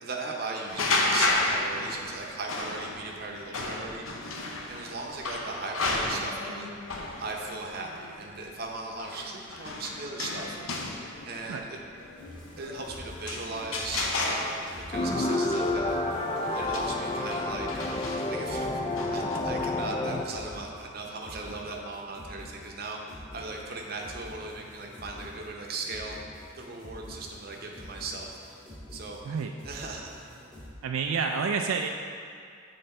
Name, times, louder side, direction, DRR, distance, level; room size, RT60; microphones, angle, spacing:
voice 1, 0.0-4.4 4.7-6.8 7.2-10.6 11.3-11.8 12.6-17.7 18.3-26.2 26.6-28.6 28.9-29.2 29.6-30.2, right 3 dB, 50° right, 0 dB, 0.7 m, -38 dB
sound 1, 0.7-19.4, left 2 dB, 90° left, 0.7 m, -33 dB
sound 2, 12.2-30.7, left 1 dB, 5° left, 1.3 m, -47 dB
sound 3, 14.9-20.2, left 2 dB, 25° left, 0.3 m, -29 dB
voice 2, 29.2-29.6 30.8-31.9, right 5 dB, 85° right, 3 dB, 0.3 m, -29 dB
7.8 x 3.8 x 4.3 m, 2.3 s
head